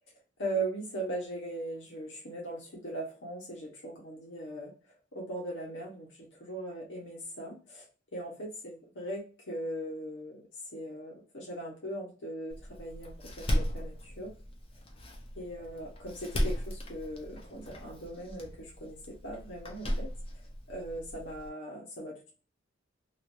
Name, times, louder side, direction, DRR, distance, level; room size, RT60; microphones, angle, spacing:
voice 1, 0.4-4.7 5.1-6.1 6.4-7.9 8.1-14.3 15.4-20.1 20.7-22.3, right 1 dB, 70° left, -3 dB, 1.0 m, -39 dB
Door, 12.5-21.5, equal, 30° left, 0.7 m, -36 dB
3.1 x 2.5 x 2.6 m, 0.35 s
head